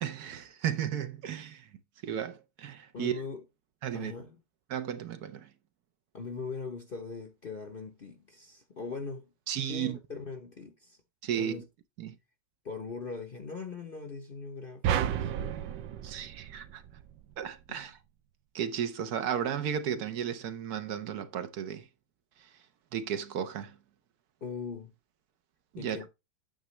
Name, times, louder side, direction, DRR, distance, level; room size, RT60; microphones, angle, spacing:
voice 1, 0.0-1.7 2.0-3.2 3.8-4.1 4.7-5.5 9.5-10.0 11.2-11.6 12.0-12.2 16.0-16.8 17.4-18.0 18.5-21.9 22.4-22.5 22.9-23.8 25.7-26.0, right 9 dB, 70° right, 1.1 m, -34 dB
voice 2, 2.9-3.4 3.9-4.4 6.1-9.3 9.7-11.0 11.3-11.7 12.6-15.7 24.4-24.9 25.8-26.1, left 4 dB, 45° left, 0.8 m, -41 dB
sound 1, 14.8-17.2, right 9 dB, 90° right, 1.3 m, -32 dB
9.0 x 6.1 x 3.1 m
omnidirectional pair, 1.9 m